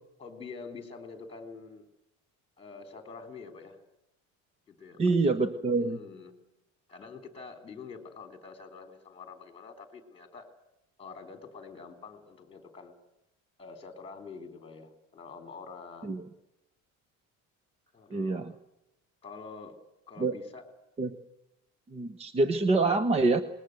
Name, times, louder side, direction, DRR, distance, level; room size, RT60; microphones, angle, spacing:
voice 1, 0.2-1.9 2.6-3.8 4.7-5.1 5.8-6.3 6.9-10.5 11.0-13.0 13.6-16.2 17.9-18.6 19.2-19.8 20.1-20.6, left 4 dB, 15° left, 6 dB, 3.5 m, -46 dB
voice 2, 5.0-6.0 16.0-16.2 18.1-18.5 20.2-20.4 21.0-21.2 21.9-23.4, right 3 dB, 20° right, 11 dB, 0.9 m, -26 dB
26.5 x 21.0 x 7.9 m, 0.88 s
cardioid pair, 175°, 32 cm